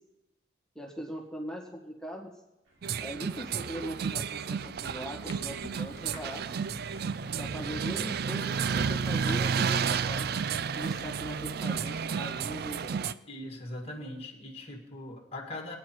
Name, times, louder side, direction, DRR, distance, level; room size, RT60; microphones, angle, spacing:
voice 1, 0.7-2.3 3.0-6.4 7.4-10.3 10.7-13.1, equal, 5° left, -1 dB, 1.6 m, -40 dB
sound 1, 2.6-9.8, right 1 dB, 75° right, 3.9 m, -59 dB
sound 2, 2.8-13.1, right 6 dB, 55° right, 0.4 m, -31 dB
Clock, 5.3-12.0, left 3 dB, 85° left, 0.9 m, -50 dB
voice 2, 13.3-15.8, left 1 dB, 30° left, 2 dB, 2.0 m, -40 dB
20.0 x 9.2 x 4.5 m, 0.97 s
head